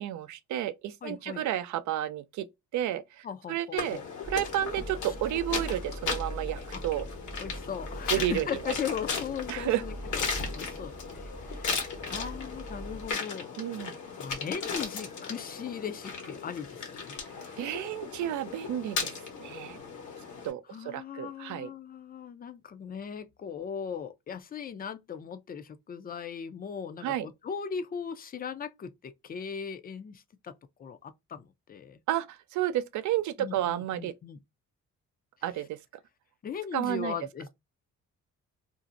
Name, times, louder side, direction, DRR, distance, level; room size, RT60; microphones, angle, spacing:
voice 1, 0.0-2.5 2.7-4.0 4.3-7.1 8.1-8.5 9.5-9.8 12.0-12.3 13.6-14.0 17.6-19.1 19.4-19.8 20.4-21.7 27.0-27.3 32.1-34.1 35.4-35.8 36.7-37.2, right 12 dB, 70° right, 0.4 m, -31 dB
voice 2, 1.0-1.4 3.2-4.0 4.8-4.9 6.7-6.8 7.4-13.6 14.2-17.5 20.7-30.5 30.8-32.0 33.4-34.4 36.4-37.5, left 7 dB, 30° left, 0.4 m, -38 dB
sound 1, 3.8-20.5, left 5 dB, 75° left, 1.1 m, -37 dB
sound 2, 4.2-13.1, right 1 dB, 5° right, 0.7 m, -42 dB
2.6 x 2.0 x 2.5 m
cardioid pair, 90°, 30 cm